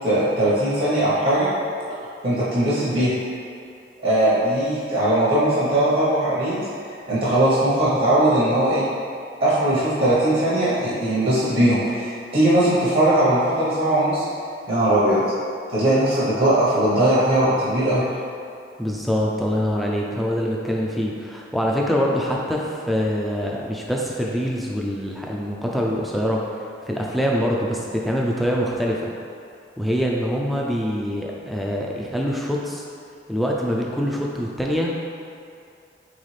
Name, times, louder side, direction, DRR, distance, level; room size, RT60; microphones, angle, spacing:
voice 1, 0.0-1.5 2.2-3.1 4.0-6.7 7.1-8.8 9.4-14.2 14.7-15.2 15.7-18.0, right 1 dB, 55° right, -10 dB, 0.9 m, -19 dB
voice 2, 18.8-26.4 26.8-29.1 29.8-32.8 33.3-34.9, equal, ahead, -3 dB, 0.3 m, -24 dB
4.0 x 3.5 x 3.2 m, 2.4 s
head